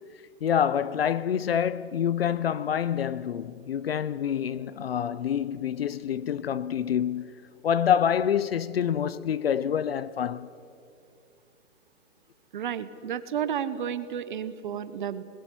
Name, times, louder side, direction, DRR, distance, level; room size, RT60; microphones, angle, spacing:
voice 1, 0.4-7.3 7.6-10.5, left 8 dB, 50° left, 0.6 m, -27 dB
voice 2, 12.5-15.2, right 8 dB, 40° right, 0.9 m, -32 dB
29.5 x 20.5 x 6.1 m
hypercardioid pair, 170°, 40 cm